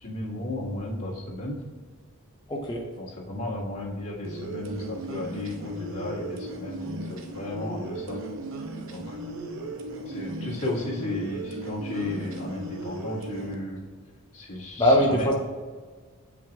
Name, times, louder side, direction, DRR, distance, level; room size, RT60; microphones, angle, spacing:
voice 1, 0.0-1.6 3.0-8.2 8.9-9.2 10.1-13.8 14.3-15.4, left 2 dB, 75° left, -6 dB, 1.6 m, -34 dB
voice 2, 2.5-2.8 14.8-15.4, equal, 20° left, 0 dB, 0.9 m, -21 dB
sound 1, 4.2-13.5, right 2 dB, 65° right, 0.8 m, -36 dB
7.2 x 5.9 x 2.4 m, 1.4 s
head